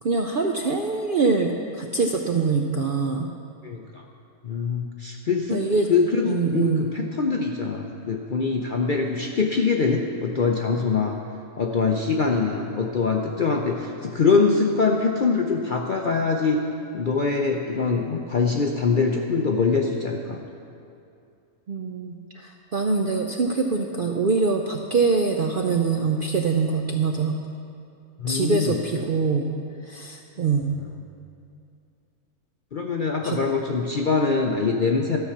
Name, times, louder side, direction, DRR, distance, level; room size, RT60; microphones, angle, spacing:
voice 1, 0.0-3.3 5.5-5.9 6.2-6.9 21.7-27.4 28.3-29.5 29.8-30.7 33.2-33.4, right 4 dB, 65° right, 2 dB, 0.5 m, -24 dB
voice 2, 3.6-4.0 4.4-11.2 11.6-16.6 16.9-20.4 28.2-28.8 32.7-35.2, left 4 dB, 55° left, 1 dB, 0.5 m, -23 dB
13.0 x 5.6 x 7.1 m, 2.5 s
omnidirectional pair, 1.6 m